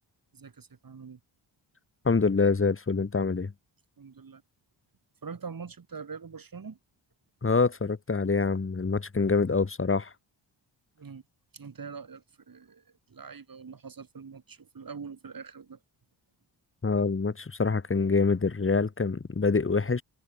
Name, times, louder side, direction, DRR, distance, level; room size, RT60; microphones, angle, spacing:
voice 1, 0.3-1.2 4.0-4.4 5.2-6.8 11.0-11.2 11.5-15.8, right 5 dB, 45° right, 3.7 m, -43 dB
voice 2, 2.0-3.5 7.4-10.1 16.8-20.0, left 4 dB, 25° left, 1.9 m, -25 dB
cardioid pair, 85°, 47 cm